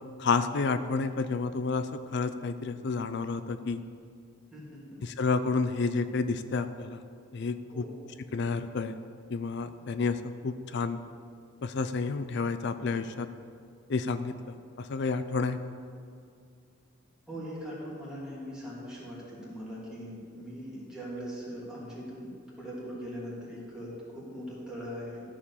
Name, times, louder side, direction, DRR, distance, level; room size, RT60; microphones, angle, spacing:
voice 1, 0.2-3.8 5.0-7.0 7.3-7.8 8.3-8.9 9.3-11.0 11.6-13.3 13.9-15.6, left 4 dB, 55° left, 11 dB, 0.4 m, -30 dB
voice 2, 4.5-5.0 7.7-7.9 17.3-22.3 22.6-25.2, equal, 5° right, -8 dB, 3.0 m, -40 dB
14.0 x 5.0 x 7.2 m, 2.4 s
head